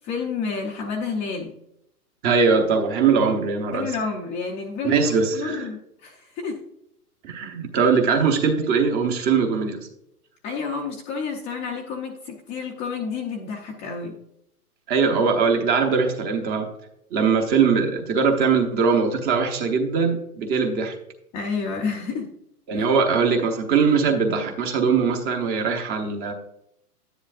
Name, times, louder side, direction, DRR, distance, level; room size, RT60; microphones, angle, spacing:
voice 1, 0.0-1.5 3.7-6.6 10.4-14.2 21.3-22.3 22.7-22.9, left 5 dB, 15° left, -1 dB, 0.6 m, -30 dB
voice 2, 2.2-3.9 4.8-5.7 7.2-9.8 14.9-16.7 17.1-21.0 22.7-26.3, right 5 dB, 20° right, 4 dB, 0.9 m, -21 dB
10.5 x 10.0 x 2.5 m, 0.76 s
hypercardioid pair, 145°, 46 cm